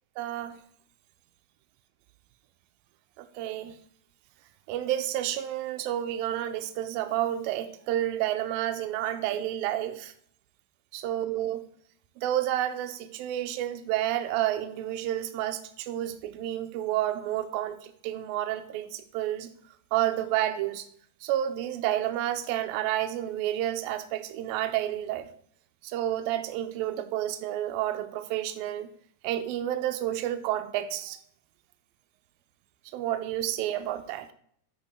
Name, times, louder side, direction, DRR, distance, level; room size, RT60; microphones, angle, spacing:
voice 1, 0.2-0.6 3.2-3.8 4.7-10.1 10.9-11.6 12.2-19.5 19.9-20.9 21.2-25.3 25.8-28.9 29.2-31.2 32.9-34.3, right 12 dB, 80° right, 8 dB, 2.2 m, -30 dB
12.0 x 8.1 x 2.2 m, 0.63 s
omnidirectional pair, 4.5 m